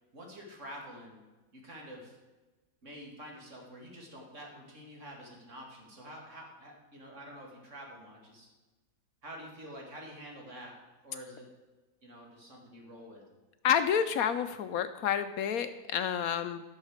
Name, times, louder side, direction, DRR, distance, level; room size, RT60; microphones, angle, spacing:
voice 1, 0.1-1.2 1.5-2.2 2.8-8.5 9.2-11.5 12.0-13.2, equal, 50° right, 0 dB, 2.5 m, -48 dB
voice 2, 13.6-16.6, left 8 dB, 70° left, 10 dB, 1.0 m, -29 dB
11.5 x 6.6 x 6.4 m, 1.2 s
omnidirectional pair, 1.7 m